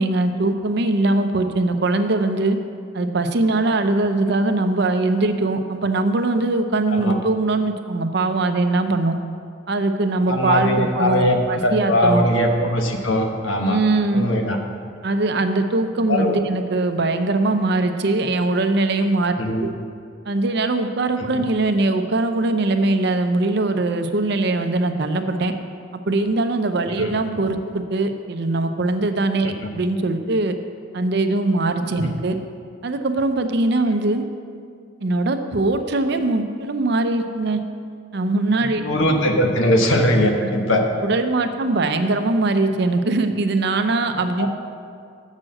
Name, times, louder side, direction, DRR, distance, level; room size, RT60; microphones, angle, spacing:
voice 1, 0.0-2.6 2.9-9.2 9.7-12.3 13.6-14.2 15.0-19.3 19.6-19.7 20.3-25.5 25.9-30.5 30.9-32.4 32.8-34.2 35.0-37.6 38.1-38.8 40.4-40.5 41.0-44.5, right 2 dB, 60° right, 7 dB, 0.6 m, -21 dB
voice 2, 10.3-13.8 14.1-14.6 16.1-16.4 19.4-19.6 21.3-21.4 27.0-27.1 29.5-29.7 32.0-32.1 38.7-40.9 44.4-44.5, left 1 dB, 80° left, 3 dB, 1.1 m, -20 dB
7.4 x 6.3 x 7.6 m, 2.2 s
head